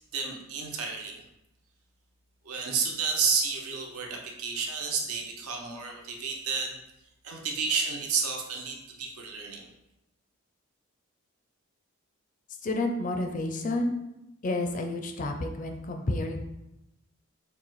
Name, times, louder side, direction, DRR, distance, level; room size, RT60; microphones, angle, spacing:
voice 1, 0.1-1.2 2.4-6.8 7.2-9.7, right 5 dB, 85° right, 1 dB, 0.8 m, -31 dB
voice 2, 12.6-14.0 14.4-16.4, left 2 dB, 35° left, 4 dB, 0.4 m, -30 dB
6.4 x 2.2 x 3.1 m, 0.90 s
head